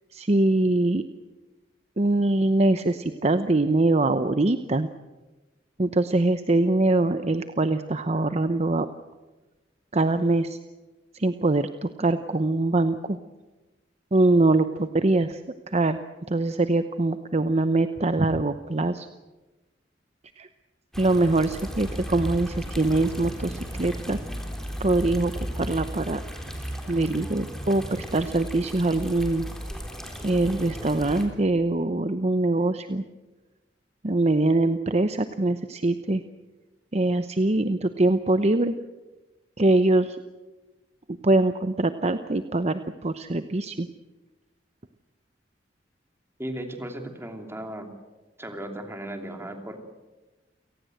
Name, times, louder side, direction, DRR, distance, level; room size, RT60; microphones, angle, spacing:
voice 1, 0.1-1.0 2.0-4.9 5.8-8.9 9.9-10.6 11.1-13.2 14.1-15.4 15.7-16.0 16.3-19.1 20.4-20.5 21.0-24.2 24.8-26.2 26.9-29.5 30.2-33.0 34.0-36.2 36.9-38.7 39.6-40.2 41.2-43.9, right 2 dB, 35° right, 10 dB, 0.8 m, -23 dB
sound 1, 20.9-31.3, equal, 5° left, 3.7 m, -35 dB
voice 2, 46.4-47.9 48.4-49.8, right 1 dB, 15° right, 5 dB, 2.9 m, -36 dB
29.0 x 18.5 x 7.9 m, 1.1 s
head